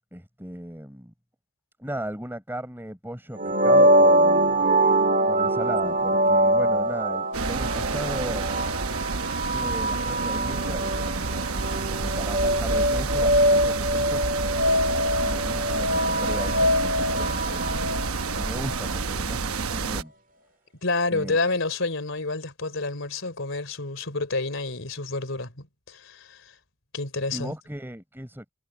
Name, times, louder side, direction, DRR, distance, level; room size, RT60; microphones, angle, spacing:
voice 1, 0.1-1.1 1.8-4.6 5.3-8.5 9.4-11.3 11.9-14.3 15.2-17.9 18.3-20.1 21.1-21.4 27.3-28.5, right 1 dB, 10° right, 4.5 m, -36 dB
sound 1, 3.4-19.0, right 1 dB, 40° right, 2.1 m, -23 dB
sound 2, 7.3-20.0, right 4 dB, 85° right, 1.0 m, -29 dB
voice 2, 20.8-26.5 26.9-27.6, left 3 dB, 60° left, 3.8 m, -29 dB
head